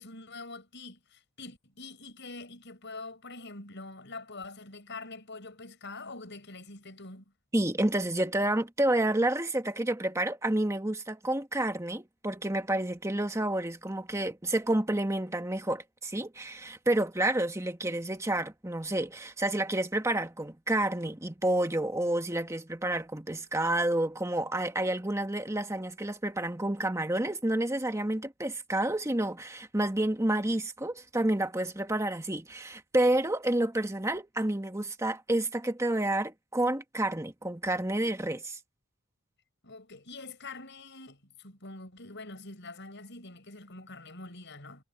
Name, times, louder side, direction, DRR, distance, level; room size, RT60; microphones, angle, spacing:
voice 1, 0.0-7.2 39.6-44.8, left 3 dB, 55° left, 7.2 m, -45 dB
voice 2, 7.5-38.6, right 1 dB, 15° right, 1.4 m, -29 dB
head